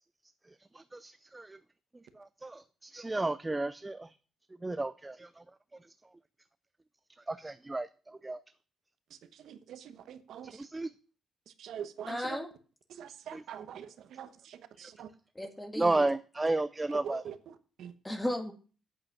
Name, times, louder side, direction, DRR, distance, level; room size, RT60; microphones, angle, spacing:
voice 1, 0.7-1.6 2.2-4.1 4.6-5.3 7.3-8.4 10.6-10.9 13.3-13.4 15.8-17.2, right 2 dB, 15° right, 13 dB, 0.4 m, -32 dB
voice 2, 9.1-10.7 11.5-12.4 12.9-15.1 16.9-17.9, right 9 dB, 75° right, 11 dB, 1.0 m, -45 dB
voice 3, 12.1-12.5 15.3-16.1 18.0-18.5, left 1 dB, 10° left, 7 dB, 1.7 m, -35 dB
8.9 x 7.9 x 5.8 m, 0.37 s
cardioid pair, 105°, 0 cm